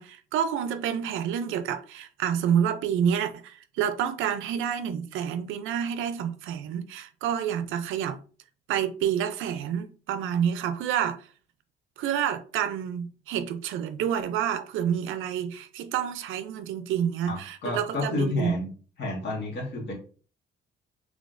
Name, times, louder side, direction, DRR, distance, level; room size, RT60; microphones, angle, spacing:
voice 1, 0.0-8.2 8.7-11.3 12.0-18.6, right 8 dB, 90° right, 0.4 m, -28 dB
voice 2, 17.3-18.7 19.0-19.9, left 2 dB, 60° left, 1.6 m, -30 dB
3.9 x 3.3 x 2.5 m
cardioid pair, 90°, 20 cm